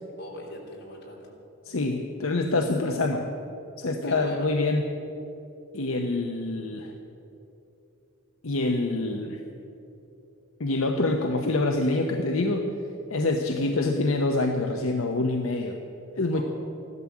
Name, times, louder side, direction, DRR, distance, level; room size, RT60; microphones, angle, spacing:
voice 1, 0.2-1.3 4.0-4.5 16.3-16.4, left 1 dB, 50° left, -2 dB, 3.4 m, -41 dB
voice 2, 1.6-3.3 3.8-4.9 5.7-6.9 8.4-9.4 10.6-12.7 13.1-15.8 16.2-16.4, left 2 dB, 75° left, 3 dB, 0.9 m, -26 dB
15.0 x 12.5 x 7.3 m, 2.9 s
head